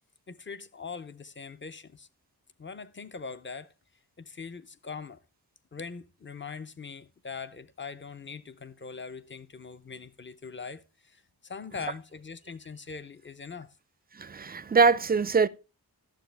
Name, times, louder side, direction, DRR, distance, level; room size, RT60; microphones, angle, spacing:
voice 1, 0.3-2.1 2.6-3.7 4.2-5.2 5.7-13.7, left 5 dB, 30° left, 0.6 m, -42 dB
voice 2, 14.2-15.5, right 5 dB, 25° right, 0.4 m, -23 dB
11.5 x 7.2 x 3.3 m
wide cardioid pair, 70°, 39 cm